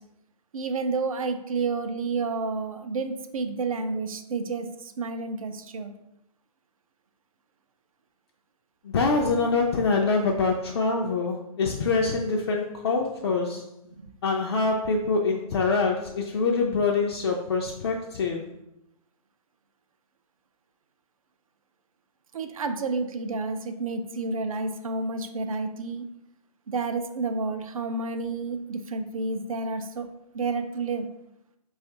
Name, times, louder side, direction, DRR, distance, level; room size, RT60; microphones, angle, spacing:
voice 1, 0.5-5.9 22.3-26.1 26.7-30.1 30.3-31.1, right 3 dB, 65° right, 7 dB, 0.4 m, -30 dB
voice 2, 8.8-13.7 14.2-18.5, left 4 dB, 45° left, 0 dB, 0.4 m, -25 dB
4.2 x 2.4 x 2.8 m, 0.83 s
figure-of-eight pair, 130°, 19 cm